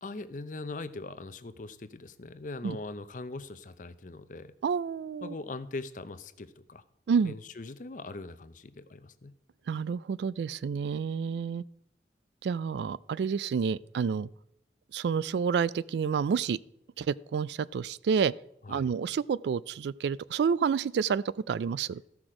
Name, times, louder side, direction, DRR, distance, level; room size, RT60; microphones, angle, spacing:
voice 1, 0.0-4.5 5.2-6.8 7.2-9.3 18.6-18.9, left 3 dB, 45° left, 0.6 m, -41 dB
voice 2, 4.6-5.3 7.1-7.3 9.7-11.6 12.4-14.3 14.9-16.6 17.0-18.3 18.7-22.0, right 6 dB, 70° right, 0.3 m, -29 dB
14.0 x 6.0 x 4.9 m
head